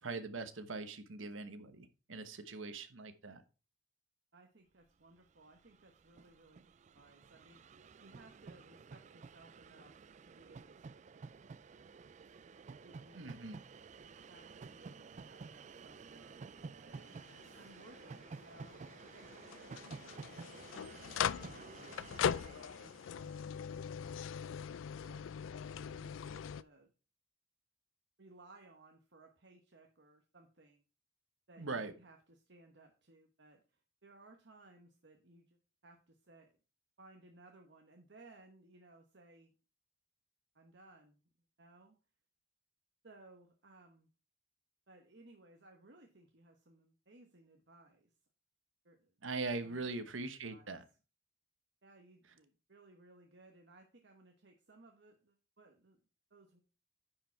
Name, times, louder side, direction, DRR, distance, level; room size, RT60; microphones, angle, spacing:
voice 1, 0.0-3.4 13.1-13.6 31.6-31.9 49.2-50.8, right 3 dB, 85° right, 1.1 m, -41 dB
voice 2, 4.3-11.0 12.8-13.2 14.3-17.2 17.6-23.7 25.0-25.3 25.8-26.9 28.2-30.8 31.5-35.6 35.8-36.5 37.0-39.5 40.5-41.2 41.6-42.0 43.0-44.1 44.9-48.1 48.8-49.1 49.6-49.9 50.5-50.8 51.8-56.0 56.3-56.6, right 2 dB, 60° right, 1.2 m, -61 dB
Train, 5.2-5.3 5.4-23.8, right 4 dB, 35° right, 0.3 m, -53 dB
sound 1, 16.9-26.6, left 8 dB, 85° left, 0.4 m, -41 dB
10.0 x 5.0 x 4.5 m
head